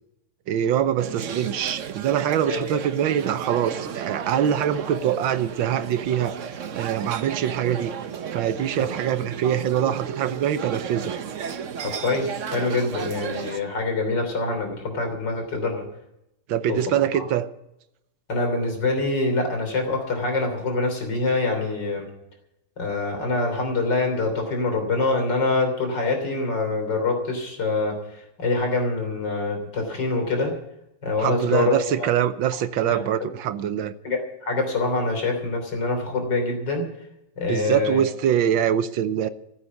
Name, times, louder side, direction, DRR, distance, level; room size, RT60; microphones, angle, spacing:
voice 1, 0.5-7.9 8.3-11.2 16.5-17.5 31.2-33.9 37.5-39.3, right 10 dB, 80° right, 12 dB, 1.6 m, -24 dB
sound 1, 1.0-13.6, right 7 dB, 50° right, 1.0 m, -34 dB
voice 2, 2.5-2.8 8.8-8.9 11.8-15.8 16.7-17.2 18.3-22.1 22.8-30.5 31.0-32.1 32.9-33.0 34.0-36.8 37.4-38.1, left 3 dB, 60° left, 4 dB, 3.9 m, -25 dB
15.0 x 8.5 x 9.2 m, 0.83 s
omnidirectional pair, 2.1 m